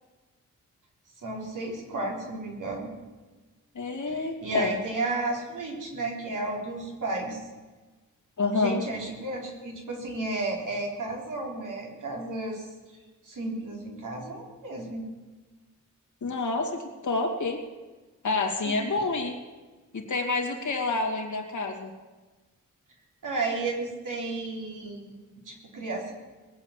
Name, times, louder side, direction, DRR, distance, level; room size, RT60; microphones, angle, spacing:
voice 1, 1.2-2.9 4.0-7.4 8.5-12.7 13.2-15.0 18.6-18.7 23.2-25.1 25.5-26.1, right 2 dB, 75° right, -1 dB, 4.1 m, -33 dB
voice 2, 3.7-4.8 8.4-8.8 16.2-17.6 18.2-19.4 19.9-21.9, left 3 dB, 65° left, 2 dB, 2.6 m, -28 dB
21.0 x 8.0 x 7.5 m, 1.3 s
cardioid pair, 85°, 32 cm